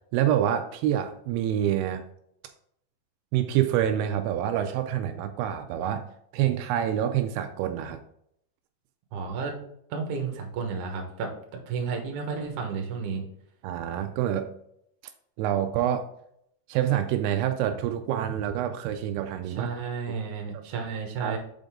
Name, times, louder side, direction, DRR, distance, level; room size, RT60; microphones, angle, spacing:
voice 1, 0.1-2.1 3.3-6.1 6.3-8.0 13.6-14.5 15.4-16.1 16.7-19.7 20.5-20.6 21.2-21.4, right 11 dB, 85° right, 7 dB, 2.6 m, -27 dB
voice 2, 9.1-9.6 9.9-13.2 19.5-21.4, right 5 dB, 65° right, 2 dB, 2.3 m, -32 dB
6.7 x 5.2 x 3.7 m, 0.72 s
omnidirectional pair, 4.6 m